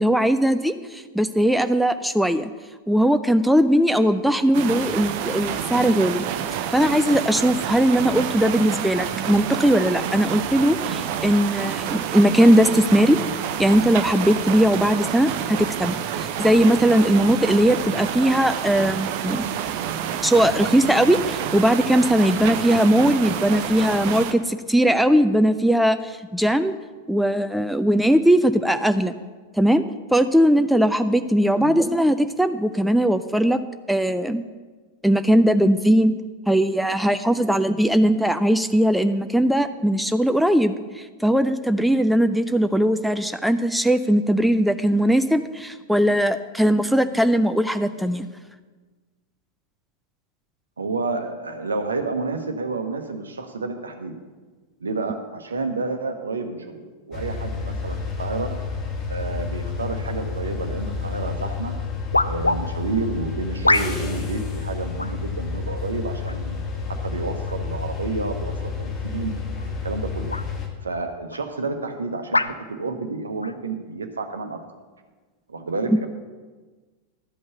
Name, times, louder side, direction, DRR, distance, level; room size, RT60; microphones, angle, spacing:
voice 1, 0.0-2.5 2.9-6.3 6.7-13.2 13.6-19.4 20.2-26.7 27.1-29.1 29.6-29.8 30.1-33.6 33.9-34.4 35.0-36.1 36.5-48.3, equal, ahead, 10 dB, 0.4 m, -19 dB
sound 1, 4.5-24.3, right 9 dB, 45° right, 0.6 m, -28 dB
voice 2, 50.8-54.1 54.8-58.5 59.1-61.7 62.2-66.6 66.9-69.4 69.8-70.3 70.8-74.6 75.5-76.1, right 3 dB, 75° right, 7 dB, 0.9 m, -30 dB
sound 2, 57.1-70.7, left 5 dB, 35° left, 1.7 m, -30 dB
sound 3, 61.2-61.3 62.1-62.6 63.6-64.2 65.0-65.2 66.2-66.6 67.4-67.6 69.5-69.7 70.3-70.5 71.3-71.4 72.3-72.6 73.4-73.6, left 2 dB, 85° left, 0.4 m, -23 dB
12.0 x 5.4 x 6.9 m, 1.4 s
figure-of-eight pair, 90°, 0 cm